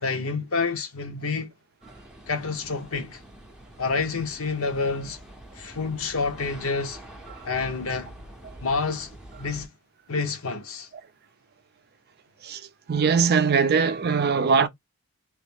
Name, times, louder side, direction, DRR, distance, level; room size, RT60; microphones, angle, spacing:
voice 1, 0.0-1.5 2.3-3.2 3.8-5.2 5.5-7.0 7.4-8.1 8.6-9.7 10.1-10.9, left 4 dB, 65° left, 0.9 m, -28 dB
sound 1, 1.8-9.7, right 1 dB, 5° right, 0.7 m, -46 dB
voice 2, 12.4-14.7, right 5 dB, 45° right, 0.5 m, -22 dB
3.2 x 2.5 x 3.5 m
head